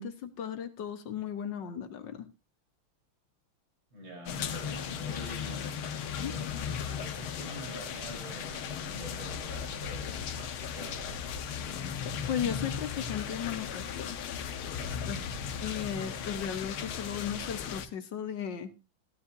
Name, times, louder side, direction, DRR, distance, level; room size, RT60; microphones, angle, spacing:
voice 1, 0.0-2.3 6.2-6.3 12.3-14.2 15.1-15.2 15.6-18.7, left 8 dB, 60° left, 9 dB, 1.6 m, -36 dB
voice 2, 3.9-5.8 6.2-11.0 14.9-15.2, right 1 dB, 65° right, 0 dB, 4.7 m, -46 dB
sound 1, 4.3-17.9, left 7 dB, 80° left, 1.8 m, -36 dB
15.5 x 12.5 x 2.6 m, 0.27 s
omnidirectional pair, 2.3 m